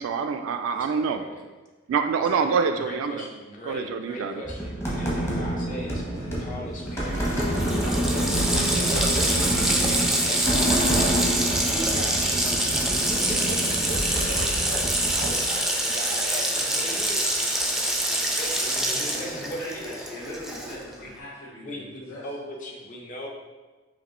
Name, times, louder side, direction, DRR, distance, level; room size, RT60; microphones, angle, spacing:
voice 1, 0.0-1.2 1.9-3.2 3.7-4.3, right 5 dB, 75° right, 7 dB, 0.3 m, -26 dB
voice 2, 0.7-1.4 2.2-6.1 6.4-17.5 18.1-20.1 20.5-20.7 21.0-21.1 21.6-23.3, equal, 40° left, -1 dB, 0.8 m, -39 dB
sound 1, 4.4-15.3, equal, 15° left, 0.9 m, -27 dB
Water tap faucet, 6.9-7.0 7.2-20.9, right 1 dB, ahead, 0.4 m, -26 dB
voice 3, 19.0-22.2, left 1 dB, 75° left, -10 dB, 1.2 m, -40 dB
5.0 x 2.9 x 3.1 m, 1.3 s
head